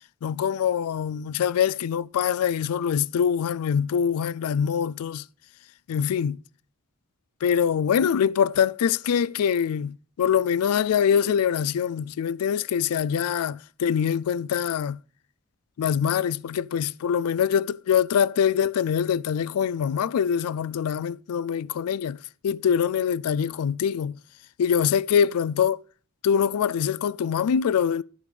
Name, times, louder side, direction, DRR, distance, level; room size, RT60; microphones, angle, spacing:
voice 1, 0.2-5.2 5.9-6.4 7.4-15.0 15.8-22.2 22.4-24.2 24.6-25.8 26.2-28.0, left 8 dB, 85° left, 0.3 m, -24 dB
11.5 x 4.9 x 5.0 m
head